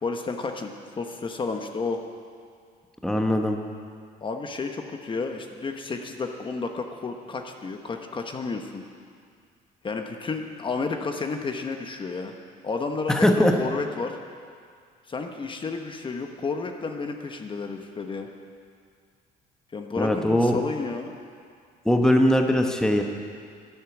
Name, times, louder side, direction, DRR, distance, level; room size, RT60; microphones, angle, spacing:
voice 1, 0.0-2.0 4.2-8.8 9.8-12.3 12.6-14.2 15.1-18.3 19.7-21.1, left 4 dB, 30° left, 4 dB, 1.1 m, -31 dB
voice 2, 3.0-3.6 13.1-13.5 20.0-20.6 21.8-23.0, left 1 dB, 5° left, 3 dB, 1.1 m, -20 dB
12.0 x 10.5 x 8.1 m, 2.2 s
cardioid pair, 110°, 17 cm